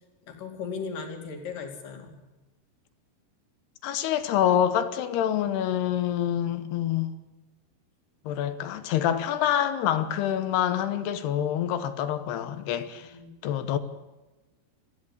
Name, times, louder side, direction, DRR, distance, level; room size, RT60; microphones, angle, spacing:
voice 1, 0.3-2.2 12.8-13.3, left 5 dB, 55° left, 3.9 m, -37 dB
voice 2, 3.8-7.2 8.3-13.1 13.4-13.8, left 10 dB, 75° left, 3.1 m, -26 dB
21.5 x 15.0 x 8.5 m
omnidirectional pair, 4.8 m